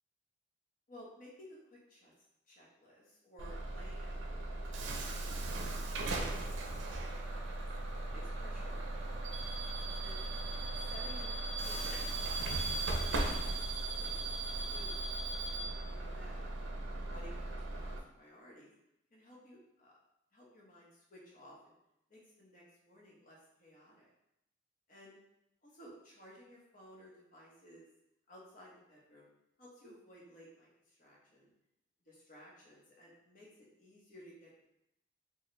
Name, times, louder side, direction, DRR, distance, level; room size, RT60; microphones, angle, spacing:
voice 1, 0.9-2.1 2.5-6.4 6.6-7.7 8.1-9.4 9.9-10.2 10.9-13.2 13.8-14.2 14.6-15.1 15.6-16.7 17.1-18.7 19.1-19.9 20.3-21.7 22.1-24.1 24.9-25.2 25.6-27.9 28.3-29.3 29.6-31.5 32.0-34.6, equal, 45° left, -4 dB, 1.0 m, -56 dB
Bus / Alarm, 3.4-18.0, right 2 dB, 75° right, 0.5 m, -37 dB
4.1 x 2.3 x 3.1 m, 0.84 s
head